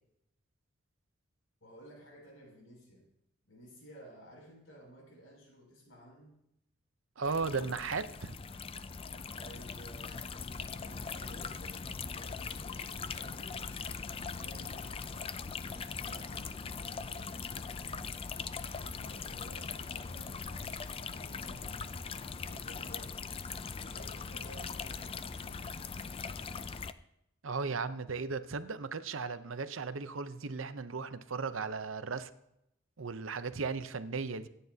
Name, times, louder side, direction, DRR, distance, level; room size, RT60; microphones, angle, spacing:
voice 1, 1.6-3.1 3.5-6.4 9.3-10.2 10.7-13.7 14.1-15.5 16.0-18.2 18.6-22.0 22.4-23.4 23.7-25.7, equal, 85° left, -1 dB, 6.7 m, -55 dB
sound 1, 7.2-26.9, left 5 dB, 30° left, 0.4 m, -41 dB
voice 2, 7.2-8.3 27.4-32.3 33.0-34.5, right 4 dB, 75° right, 12 dB, 0.8 m, -36 dB
25.5 x 10.0 x 2.8 m, 0.81 s
head